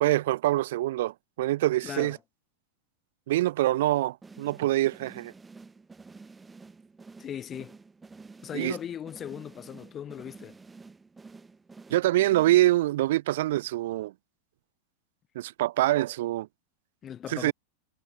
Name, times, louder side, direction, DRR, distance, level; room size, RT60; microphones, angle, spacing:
voice 1, 0.0-2.2 3.3-5.3 8.5-8.8 11.9-14.1 15.3-16.5 17.3-17.5, right 16 dB, 55° right, 0.7 m, -25 dB
voice 2, 1.8-2.2 7.2-7.8 8.4-10.6 17.0-17.5, left 9 dB, 25° left, 1.5 m, -38 dB
sound 1, 4.2-13.0, right 4 dB, 10° right, 2.4 m, -50 dB
figure-of-eight pair, 90°, 0 cm